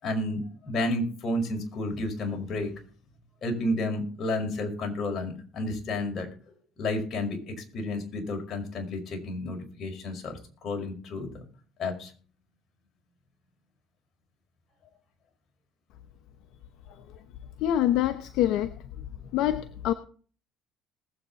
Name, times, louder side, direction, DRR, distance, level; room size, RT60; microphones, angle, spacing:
voice 1, 0.0-2.7 3.4-6.3 6.8-11.4 11.8-12.1, left 1 dB, 45° left, 3 dB, 5.4 m, -31 dB
voice 2, 17.6-19.0 19.3-19.9, left 12 dB, 70° left, 9 dB, 1.0 m, -26 dB
20.0 x 8.2 x 4.2 m, 0.42 s
cardioid pair, 105°, 0 cm